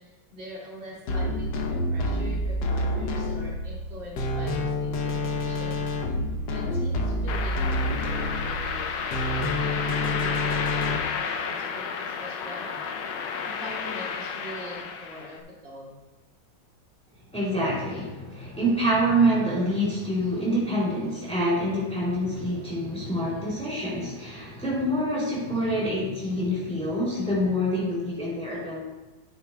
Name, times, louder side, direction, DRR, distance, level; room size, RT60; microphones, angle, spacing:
voice 1, 0.0-5.8 6.5-12.8 13.4-15.9, equal, 70° right, -5 dB, 2.6 m, -43 dB
sound 1, 1.1-11.0, left 1 dB, 70° left, 1.5 m, -28 dB
sound 2, 7.3-15.4, left 6 dB, 85° left, 1.5 m, -32 dB
voice 2, 17.3-28.8, equal, 5° left, -7 dB, 2.7 m, -26 dB
10.5 x 9.7 x 2.2 m, 1.1 s
omnidirectional pair, 2.1 m